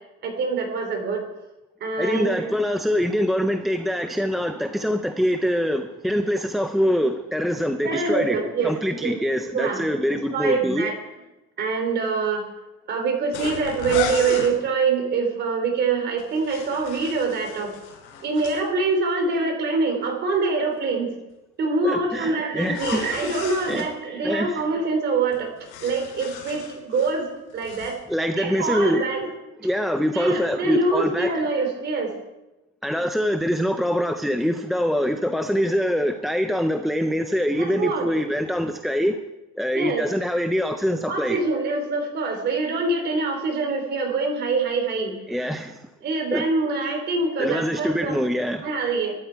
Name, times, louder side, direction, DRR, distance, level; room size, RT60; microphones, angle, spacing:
voice 1, 0.2-1.2 1.8-2.4 7.8-8.7 9.0-9.2 9.5-9.9 10.3-10.9 11.6-12.4 12.9-17.7 18.2-21.1 21.6-25.5 25.8-28.0 28.4-29.3 30.1-32.1 37.6-38.1 39.7-40.1 41.1-45.2 46.0-48.2 48.6-49.1, right 3 dB, 35° right, 4 dB, 3.6 m, -24 dB
voice 2, 2.0-10.9 21.8-23.3 23.7-23.8 24.2-24.6 28.1-29.1 29.6-31.3 32.8-39.2 39.5-41.4 45.3-45.9 46.3-46.5 47.4-48.7, equal, ahead, 6 dB, 0.4 m, -24 dB
sound 1, 13.3-14.5 16.2-18.6 22.7-23.9 25.3-27.2 27.5-28.0, left 6 dB, 80° left, 5.6 m, -34 dB
23.0 x 12.0 x 4.6 m, 0.99 s
cardioid pair, 175°, 31 cm